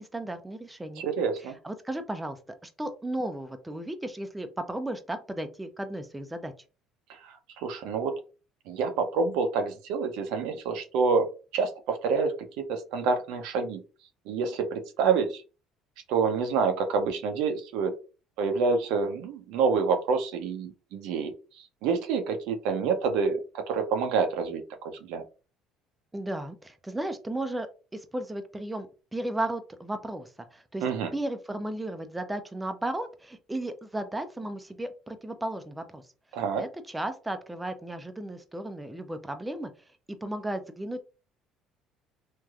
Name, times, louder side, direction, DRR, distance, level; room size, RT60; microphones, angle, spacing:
voice 1, 0.0-1.0 1.6-6.5 26.1-28.9 29.1-30.8 31.1-36.0 36.6-39.7 40.2-41.0, right 1 dB, 10° right, 7 dB, 0.5 m, -34 dB
voice 2, 1.0-1.6 7.1-8.2 8.7-11.3 11.5-13.8 14.3-15.4 16.1-17.9 18.4-25.2 30.8-31.1 36.3-36.6, right 5 dB, 80° right, 6 dB, 0.6 m, -28 dB
3.1 x 2.5 x 2.3 m, 0.34 s
supercardioid pair, 85°, 0 cm